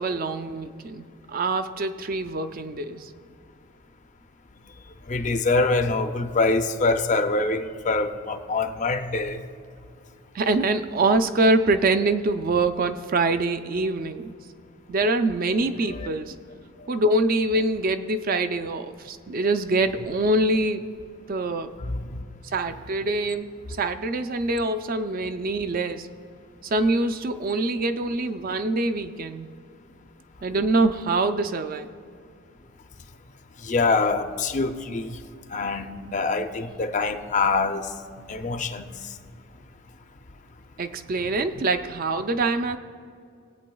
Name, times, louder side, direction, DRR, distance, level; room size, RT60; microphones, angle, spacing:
voice 1, 0.0-3.1 10.3-14.4 14.9-16.4 16.9-20.9 21.3-21.7 22.5-26.1 26.6-29.5 30.4-31.9 40.8-42.8, right 2 dB, 40° right, 0.4 m, -24 dB
voice 2, 5.1-9.4 15.9-16.1 21.8-22.2 33.6-35.2 35.5-37.9 38.3-38.8, left 3 dB, 35° left, 0.5 m, -25 dB
21.5 x 8.4 x 2.3 m
head